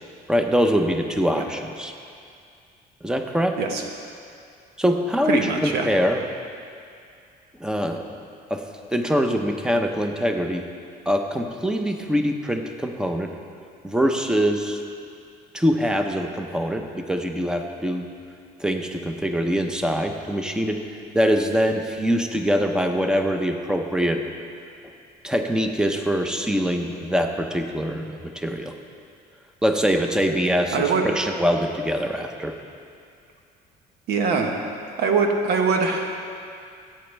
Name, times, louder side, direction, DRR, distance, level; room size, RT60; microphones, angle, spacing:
voice 1, 0.3-1.9 3.0-3.6 4.8-6.2 7.6-8.0 8.5-8.6 8.9-10.6 11.1-13.3 13.8-14.8 15.5-18.1 18.6-20.8 21.1-24.2 25.2-28.7 29.6-32.6, equal, 5° right, 4 dB, 0.8 m, -23 dB
voice 2, 5.2-5.9 30.7-31.0 34.1-36.2, right 4 dB, 75° right, 2 dB, 1.3 m, -23 dB
16.0 x 8.8 x 3.4 m, 2.3 s
cardioid pair, 110°, 17 cm